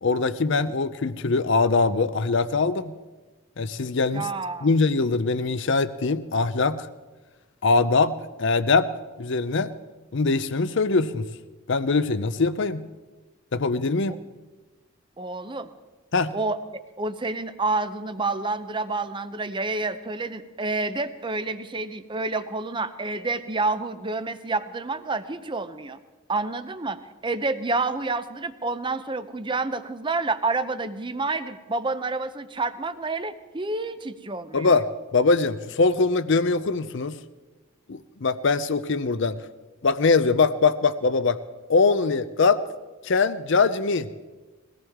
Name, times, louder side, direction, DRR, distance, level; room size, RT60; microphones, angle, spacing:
voice 1, 0.0-2.9 3.6-4.3 4.6-6.9 7.6-8.9 9.2-9.7 10.1-11.3 11.7-12.9 13.5-14.2 16.1-16.3 34.5-37.2 37.9-39.4 39.8-41.4 41.7-42.6 43.0-44.1, left 4 dB, 60° left, 13 dB, 0.6 m, -22 dB
voice 2, 4.1-4.7 14.1-14.2 15.2-15.7 16.3-26.0 26.3-34.8, right 3 dB, 25° right, 11 dB, 0.7 m, -29 dB
22.0 x 17.5 x 3.6 m, 1.2 s
head